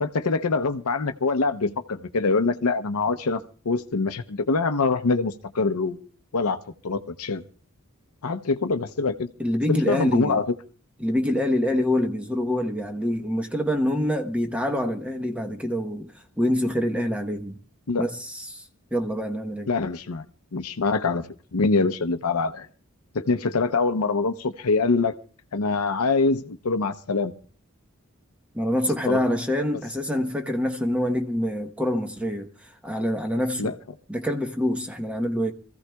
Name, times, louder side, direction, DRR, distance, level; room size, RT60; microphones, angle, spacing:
voice 1, 0.0-6.1 6.3-6.6 6.8-7.4 8.2-9.3 9.7-10.5 17.9-18.1 19.7-20.2 20.5-21.2 21.5-22.7 23.1-25.1 25.5-27.3 29.1-29.2 33.6-33.7, left 4 dB, 85° left, 0.7 m, -24 dB
voice 2, 9.4-10.4 11.0-16.1 16.4-17.6 18.0-18.6 18.9-19.7 28.5-32.5 32.8-33.7 34.1-35.5, left 1 dB, 5° right, 1.0 m, -25 dB
26.0 x 15.0 x 2.3 m
head